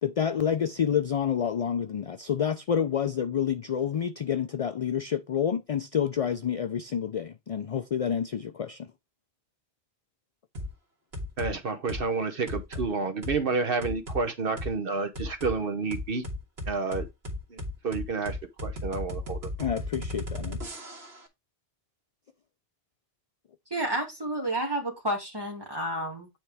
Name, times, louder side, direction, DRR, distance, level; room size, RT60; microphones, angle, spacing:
voice 1, 0.0-8.9 19.6-20.6, left 8 dB, 55° left, 0.4 m, -28 dB
sound 1, 10.5-10.7 11.1-11.5 11.9-12.1 12.5-12.9 13.2-13.4 13.8-14.2 14.6-14.7 15.1-15.5 15.9-21.2, left 1 dB, 75° right, 2.0 m, -35 dB
voice 2, 11.4-16.2 16.7-17.1 17.5-19.7, right 4 dB, 60° right, 1.1 m, -30 dB
voice 3, 23.7-26.3, right 1 dB, 20° right, 2.1 m, -30 dB
9.1 x 4.4 x 3.4 m
omnidirectional pair, 1.1 m